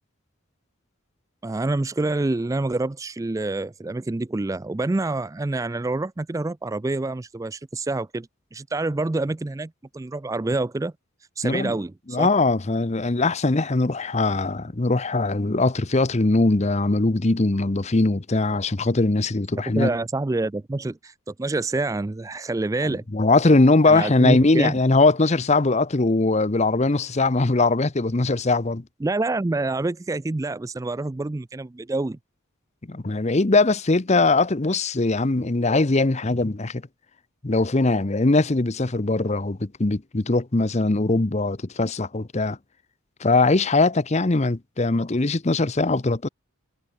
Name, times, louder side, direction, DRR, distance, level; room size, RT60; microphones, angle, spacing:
voice 1, 1.4-10.9 11.4-12.3 19.8-23.0 23.9-24.8 29.0-32.2, right 2 dB, 15° right, 0.3 m, -27 dB
voice 2, 11.4-11.8 12.1-19.9 23.1-28.8 32.9-36.8 37.4-42.6 43.2-46.3, left 2 dB, 30° left, 0.8 m, -21 dB
head